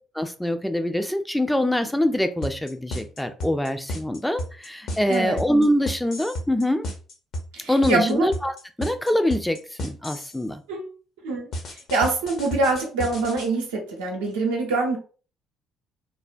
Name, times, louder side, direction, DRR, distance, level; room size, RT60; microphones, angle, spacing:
voice 1, 0.1-6.9 7.7-8.5 8.8-10.6, left 1 dB, 5° left, 7 dB, 0.4 m, -24 dB
sound 1, 2.4-10.4 11.5-13.5, equal, 55° left, 0.7 m, -33 dB
voice 2, 7.5-8.3 10.7-10.9 11.2-11.5 11.9-15.0, right 3 dB, 75° right, 0 dB, 0.7 m, -24 dB
3.2 x 2.1 x 2.5 m, 0.38 s
figure-of-eight pair, 50°, 0 cm